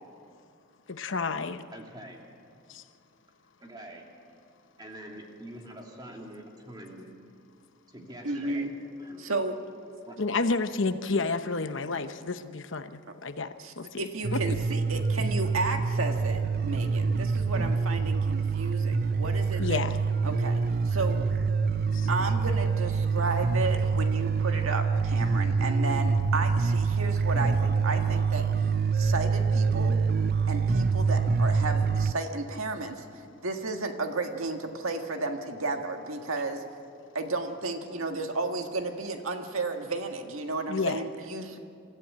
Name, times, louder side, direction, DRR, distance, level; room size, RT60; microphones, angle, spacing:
voice 1, 0.9-1.6 2.7-2.8 10.2-13.5 13.8-13.9 14.5-14.6 19.6-20.0 21.9-22.1 40.7-41.0, left 3 dB, 65° left, 10 dB, 0.9 m, -30 dB
voice 2, 1.7-2.2 3.6-4.0 4.8-7.0 7.9-8.6 9.0-9.3 10.0-10.2, right 1 dB, 20° right, 0 dB, 2.8 m, -45 dB
voice 3, 8.2-8.7 9.2-9.5 14.0-19.8 20.2-20.6 20.9-21.2 22.1-28.4 28.9-30.0 30.5-33.1 33.4-36.6 37.1-41.6, right 3 dB, 80° right, 5 dB, 1.7 m, -33 dB
sound 1, 14.2-32.1, right 5 dB, 45° right, 0.5 m, -26 dB
27.0 x 14.5 x 8.6 m, 2.3 s
head